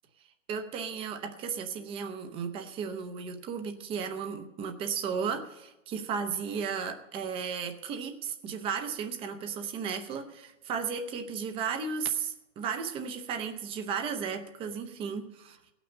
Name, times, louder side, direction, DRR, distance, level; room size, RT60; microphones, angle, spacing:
voice 1, 0.5-15.6, right 6 dB, 15° right, 7 dB, 0.8 m, -34 dB
17.0 x 6.1 x 7.6 m, 0.95 s
hypercardioid pair, 145°, 37 cm